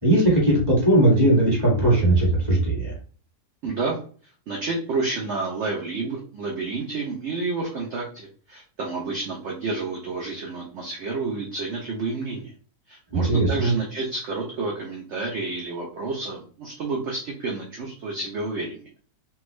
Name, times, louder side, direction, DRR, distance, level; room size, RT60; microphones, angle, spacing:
voice 1, 0.0-2.9 13.1-13.7, right 1 dB, 15° right, -3 dB, 1.3 m, -19 dB
voice 2, 3.6-4.0 4.5-12.5 12.9-18.9, right 3 dB, 60° right, -1 dB, 0.8 m, -30 dB
3.4 x 2.3 x 3.1 m, 0.42 s
omnidirectional pair, 1.7 m